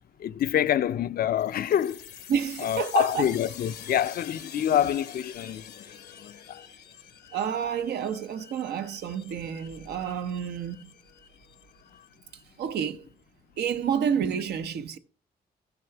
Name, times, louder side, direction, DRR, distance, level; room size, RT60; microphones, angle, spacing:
voice 1, 0.2-2.1 2.6-6.7, left 10 dB, 65° left, 0.4 m, -27 dB
sound 1, 1.4-12.8, left 9 dB, 85° left, 1.0 m, -47 dB
voice 2, 2.3-3.3 7.3-10.9 12.6-13.1 13.6-15.0, right 8 dB, 90° right, 0.8 m, -29 dB
13.0 x 6.2 x 4.6 m
cardioid pair, 80°, 16 cm